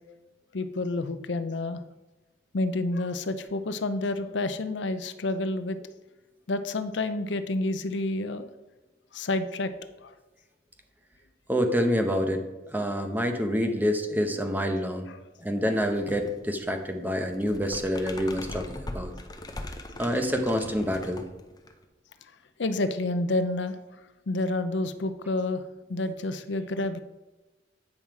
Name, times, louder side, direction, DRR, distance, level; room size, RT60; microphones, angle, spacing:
voice 1, 0.5-1.8 2.5-5.8 6.5-8.5 9.1-9.7 10.0-10.1 15.1-15.2 22.6-23.8 24.3-25.6 25.9-27.0, left 2 dB, 80° left, 11 dB, 0.6 m, -29 dB
voice 2, 11.5-15.1 15.4-19.1 20.0-21.2, equal, 10° right, 5 dB, 0.8 m, -27 dB
sound 1, 15.7-16.3 16.6-21.8, left 1 dB, 20° left, 0.8 m, -40 dB
8.9 x 5.6 x 4.7 m, 1.1 s
head